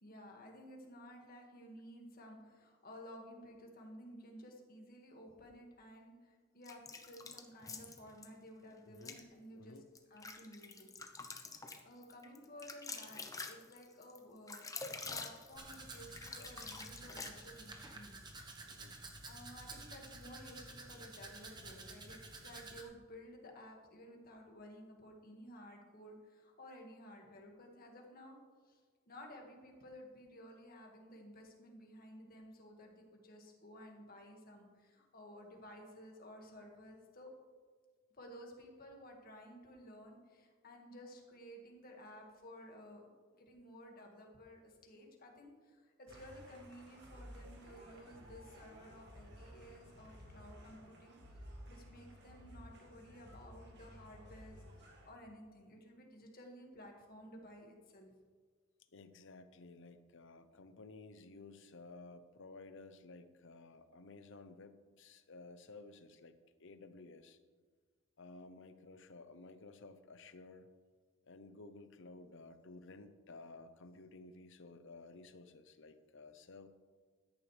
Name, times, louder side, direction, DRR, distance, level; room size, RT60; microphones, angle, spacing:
voice 1, 0.0-9.8 10.1-10.9 11.6-14.6 15.0-18.3 19.3-28.4 28.6-28.8 29.1-37.3 38.2-43.1 43.4-51.1 51.7-58.1, equal, 45° left, 1 dB, 1.9 m, -54 dB
sound 1, 6.6-8.3 8.9-9.2 9.8-17.8, left 4 dB, 15° left, 0.8 m, -47 dB
voice 2, 8.8-9.2 9.5-9.8 18.7-18.9 58.9-67.4 68.2-70.7 71.3-76.7, left 3 dB, 65° left, 10 dB, 0.8 m, -55 dB
Domestic sounds home sounds, 15.6-22.8, right 3 dB, 20° right, 1.2 m, -51 dB
sound 2, 46.1-55.1, equal, 55° right, 1.8 m, -55 dB
14.0 x 10.5 x 3.3 m, 1.5 s
head